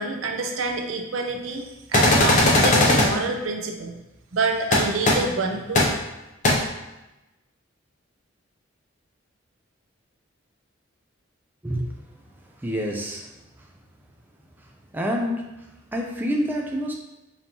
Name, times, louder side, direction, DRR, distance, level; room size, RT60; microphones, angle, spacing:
voice 1, 0.0-1.6 1.9-3.9 4.3-5.9, right 3 dB, 85° right, 3 dB, 0.6 m, -27 dB
sound 1, 1.9-3.1 4.7-4.8 5.0-5.1 5.7-5.8 6.4-6.5, left 1 dB, 40° left, 0.7 m, -17 dB
voice 2, 12.4-13.3 14.9-15.7 15.9-16.9, equal, 10° right, 0 dB, 0.4 m, -27 dB
5.2 x 2.8 x 2.9 m, 0.97 s
head